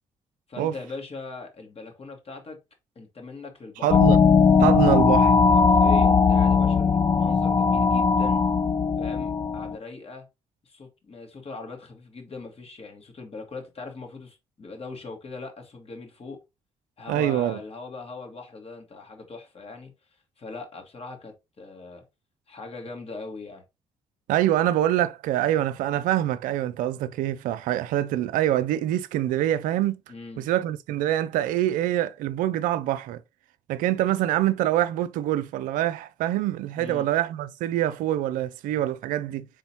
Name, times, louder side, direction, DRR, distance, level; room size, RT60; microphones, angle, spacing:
voice 1, 0.5-2.6 3.0-4.0 5.5-8.4 9.0-10.3 10.6-16.4 17.0-19.9 20.4-22.0 22.5-23.6 30.1-30.5 36.8-37.1, left 3 dB, 45° left, 1.8 m, -40 dB
voice 2, 3.8-4.2 4.6-5.5 17.1-17.6 24.3-30.0 30.4-33.2 33.7-39.5, right 12 dB, 75° right, 0.4 m, -25 dB
sound 1, 3.9-9.8, left 5 dB, 25° left, 0.4 m, -19 dB
4.1 x 3.7 x 2.9 m
hypercardioid pair, 45°, 14 cm